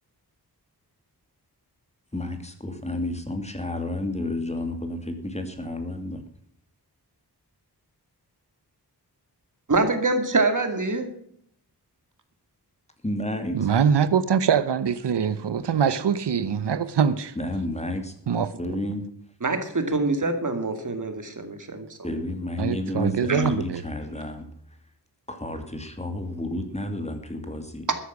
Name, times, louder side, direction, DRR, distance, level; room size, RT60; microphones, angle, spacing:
voice 1, 2.1-6.2 13.0-13.6 17.4-18.1 18.6-19.0 22.0-24.4 25.3-27.9, left 1 dB, 15° left, 2.5 m, -31 dB
voice 2, 9.7-11.1 19.4-22.1 23.3-23.4 27.9-28.0, right 3 dB, 50° right, 2.2 m, -25 dB
voice 3, 13.5-17.4 18.3-18.5 22.6-23.8, right 7 dB, 85° right, 0.9 m, -23 dB
13.5 x 10.0 x 6.0 m
wide cardioid pair, 115°, 40 cm